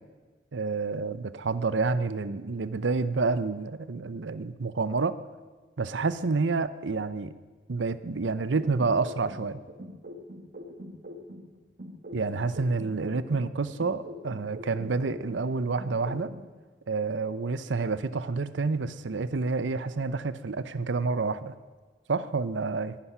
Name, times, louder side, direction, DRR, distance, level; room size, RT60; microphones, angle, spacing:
voice 1, 0.5-5.1 5.8-7.3 7.7-9.6 12.1-16.3 16.9-21.5 22.1-23.0, right 4 dB, 85° right, 15 dB, 0.7 m, -29 dB
sound 1, 8.5-11.5 11.8-15.5 15.8-16.5, left 1 dB, 55° right, 1.6 m, -43 dB
10.5 x 9.9 x 9.9 m, 1.3 s
head